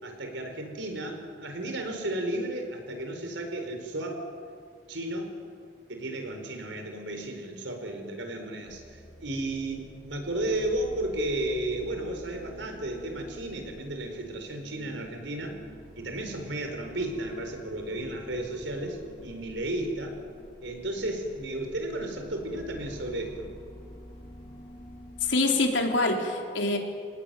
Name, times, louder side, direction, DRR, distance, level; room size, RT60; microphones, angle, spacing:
voice 1, 0.0-4.2 4.9-5.3 5.9-15.6 16.0-20.2 20.6-23.5, right 1 dB, 85° right, 4 dB, 4.7 m, -33 dB
sound 1, 8.6-25.4, equal, 25° left, 3.7 m, -48 dB
voice 2, 25.2-26.8, left 2 dB, 85° left, 2 dB, 3.8 m, -25 dB
26.0 x 18.5 x 9.2 m, 2.2 s
head